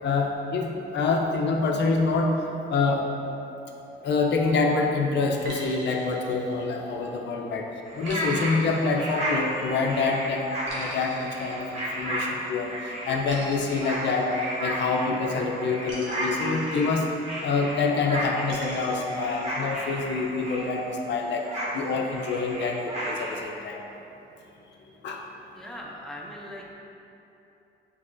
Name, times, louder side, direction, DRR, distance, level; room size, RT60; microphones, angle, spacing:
voice 1, 0.0-2.3 2.7-3.0 4.0-7.7 8.0-10.5 10.7-14.3 14.6-17.1 17.4-21.5 21.7-23.8 25.0-25.2, left 4 dB, 65° left, 1 dB, 0.5 m, -26 dB
sound 1, 5.4-7.1 8.1-9.7 10.7-12.4 13.3-15.0 15.9-17.4 18.5-19.5, right 1 dB, 70° right, 1.0 m, -43 dB
sound 2, 7.9-20.9 21.3-23.4, equal, 35° right, 0.9 m, -33 dB
voice 2, 25.5-26.7, equal, ahead, -2 dB, 0.5 m, -40 dB
6.0 x 2.9 x 2.5 m, 2.9 s
cardioid pair, 90°, 20 cm